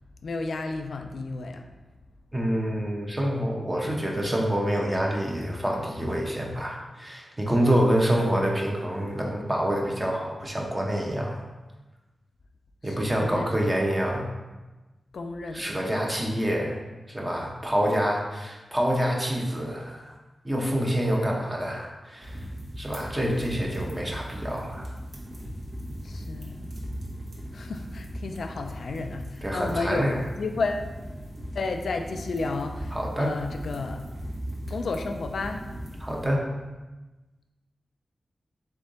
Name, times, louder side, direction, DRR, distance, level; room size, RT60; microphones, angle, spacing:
voice 1, 0.2-1.7 12.8-13.7 15.1-15.8 26.0-26.7 27.5-30.9 31.6-34.0 34.7-35.6, left 3 dB, 75° left, 5 dB, 0.4 m, -32 dB
voice 2, 2.3-11.4 12.8-14.3 15.5-16.8 17.1-20.1 20.4-22.4 22.8-24.9 29.4-30.2 32.9-33.3 36.0-36.5, equal, 20° right, -1 dB, 0.9 m, -27 dB
sound 1, 22.2-36.3, equal, 55° right, 1.1 m, -38 dB
3.6 x 3.4 x 3.9 m, 1.2 s
cardioid pair, 60°, 0 cm